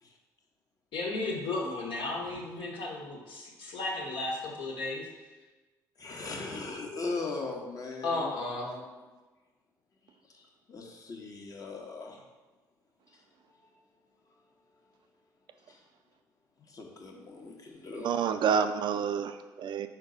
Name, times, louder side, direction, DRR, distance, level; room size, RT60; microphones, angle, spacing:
voice 1, 0.9-5.0 8.0-8.7, left 2 dB, 65° left, -2 dB, 1.6 m, -34 dB
voice 2, 6.0-8.3 8.6-9.1 10.3-12.2 13.1-13.2 15.7-15.8 16.7-18.2, left 3 dB, 40° left, 0 dB, 1.3 m, -39 dB
voice 3, 18.0-19.9, right 7 dB, 55° right, 9 dB, 0.4 m, -28 dB
4.8 x 4.4 x 5.1 m, 1.2 s
hypercardioid pair, 55°, 9 cm